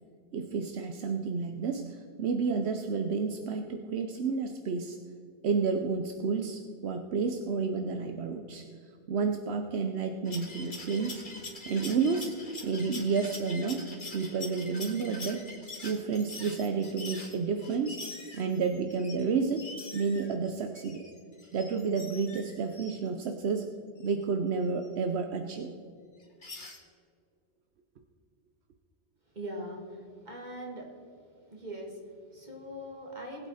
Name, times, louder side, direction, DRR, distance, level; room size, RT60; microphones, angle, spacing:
voice 1, 0.3-5.0 5.4-8.6 9.1-11.2 11.6-12.3 12.6-13.8 14.1-15.5 15.8-18.0 18.3-19.7 19.9-21.1 21.5-23.7 24.0-25.7, right 5 dB, 80° right, 6 dB, 1.0 m, -30 dB
sound 1, 10.2-19.2 19.6-23.0 24.0-24.1 24.8-24.9 26.2-26.8, left 2 dB, 50° left, 1.8 m, -44 dB
voice 2, 29.3-31.0 31.5-33.5, equal, 45° right, 0 dB, 2.4 m, -41 dB
19.5 x 8.2 x 4.1 m, 2.3 s
omnidirectional pair, 1.1 m